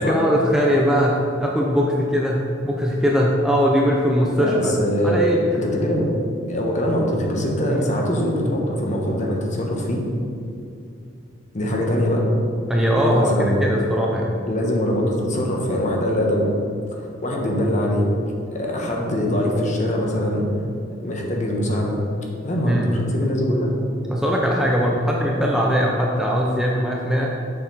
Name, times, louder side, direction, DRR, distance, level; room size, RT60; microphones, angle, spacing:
voice 1, 0.0-4.7 5.0-5.5 7.7-7.8 12.7-13.3 13.6-14.4 22.7-22.9 24.1-27.3, equal, 5° right, -3 dB, 0.5 m, -20 dB
voice 2, 4.4-5.2 5.5-6.1 6.5-10.0 11.5-12.2 13.1-13.6 14.4-16.5 16.9-18.1 18.5-20.5 21.0-22.0 22.4-23.7, equal, 40° left, -1 dB, 1.0 m, -23 dB
6.8 x 5.7 x 4.1 m, 2.5 s
head